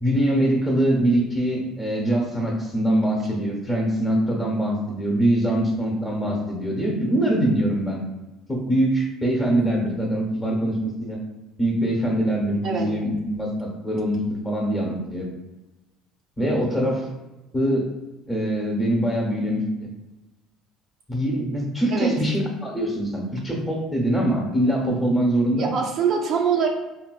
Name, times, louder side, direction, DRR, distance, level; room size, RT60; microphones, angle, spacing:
voice 1, 0.0-8.0 8.5-11.2 11.6-14.2 14.4-15.3 16.4-17.1 17.5-17.9 18.3-19.9 21.1-25.7, right 1 dB, 15° left, -2 dB, 0.9 m, -23 dB
voice 2, 25.6-26.7, right 6 dB, 45° right, 0 dB, 0.4 m, -23 dB
3.9 x 2.2 x 2.3 m, 1.1 s
cardioid pair, 135°, 0 cm